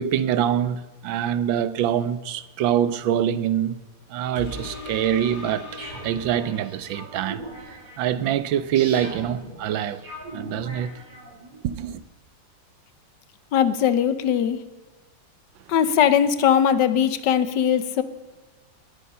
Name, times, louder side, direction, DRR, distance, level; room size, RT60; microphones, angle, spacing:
voice 1, 0.0-3.8 4.1-5.7 6.0-7.4 7.7-10.0 10.3-10.9 11.6-12.0, right 10 dB, 85° right, 1.5 m, -24 dB
sound 1, 4.4-7.3 7.8-7.9, left 2 dB, 45° left, 2.3 m, -39 dB
sound 2, 5.8-11.6, right 2 dB, 45° right, 5.1 m, -40 dB
voice 2, 13.5-14.6 15.7-18.0, left 9 dB, 70° left, 1.5 m, -20 dB
19.0 x 10.5 x 5.5 m
omnidirectional pair, 2.1 m